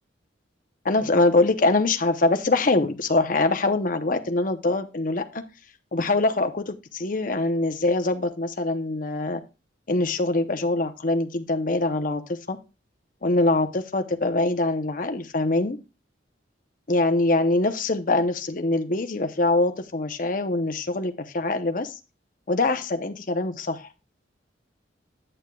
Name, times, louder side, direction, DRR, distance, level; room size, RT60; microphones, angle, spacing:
voice 1, 0.8-5.4 5.9-9.4 9.9-12.6 13.2-15.8 16.9-22.0 22.5-23.9, left 2 dB, 45° left, 8 dB, 0.8 m, -23 dB
8.7 x 8.7 x 2.3 m, 0.30 s
head